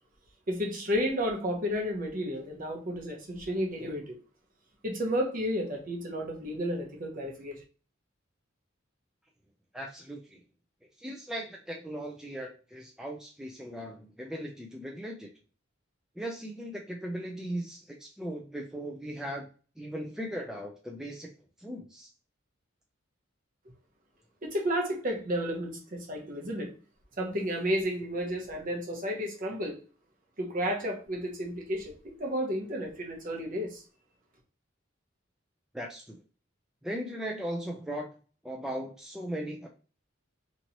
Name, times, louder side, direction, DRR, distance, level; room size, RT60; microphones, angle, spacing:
voice 1, 0.5-4.2 4.8-7.6 24.4-26.7 27.2-29.8 30.4-31.9 32.2-33.8, equal, 45° right, 0.9 m, -32 dB
voice 2, 9.7-10.4 11.0-15.3 16.2-19.5 19.8-21.3 21.6-22.1 35.7-36.2 36.8-38.1 38.4-39.7, equal, 5° right, 0.3 m, -38 dB
3.0 x 2.6 x 2.9 m
head